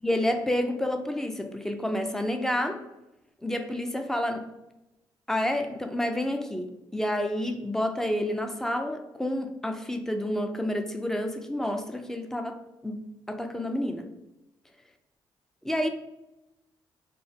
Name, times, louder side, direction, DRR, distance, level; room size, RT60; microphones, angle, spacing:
voice 1, 0.0-2.8 3.4-4.5 5.3-13.0 13.3-14.1 15.6-15.9, left 1 dB, 5° left, 6 dB, 0.3 m, -29 dB
2.3 x 2.1 x 3.9 m, 0.94 s
cardioid pair, 85°, 9 cm